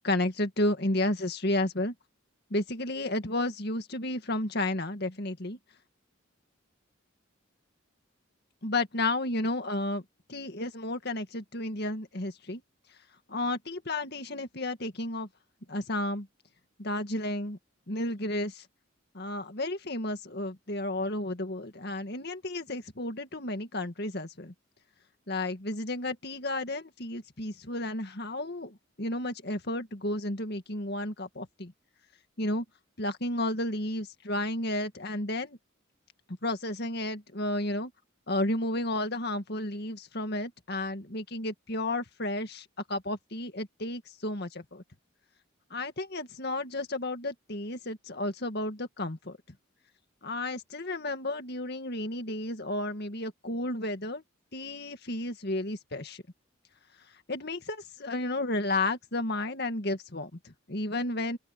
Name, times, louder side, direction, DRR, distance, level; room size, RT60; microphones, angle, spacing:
voice 1, 0.0-1.9 2.5-5.6 8.6-10.0 10.3-12.6 13.3-15.3 15.7-16.3 16.8-17.6 17.9-18.6 19.1-24.5 25.3-31.7 32.4-32.6 33.0-35.6 36.4-37.9 38.3-44.8 45.7-49.4 50.2-54.2 54.5-56.2 57.3-61.4, left 1 dB, 50° left, 2.0 m, -32 dB
open air
head